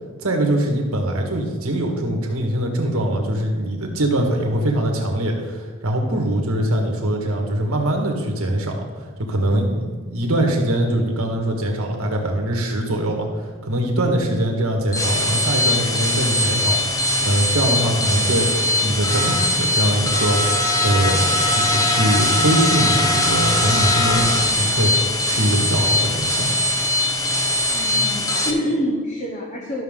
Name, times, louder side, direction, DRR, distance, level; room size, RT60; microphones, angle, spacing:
voice 1, 0.2-8.9 9.2-18.5 18.8-20.4 20.8-26.5, right 1 dB, 75° right, 1 dB, 1.6 m, -22 dB
sound 1, 14.8-28.5, left 1 dB, 15° left, 0.7 m, -20 dB
voice 2, 27.7-29.8, equal, 35° left, -2 dB, 1.0 m, -26 dB
12.5 x 6.2 x 3.7 m, 1.5 s
head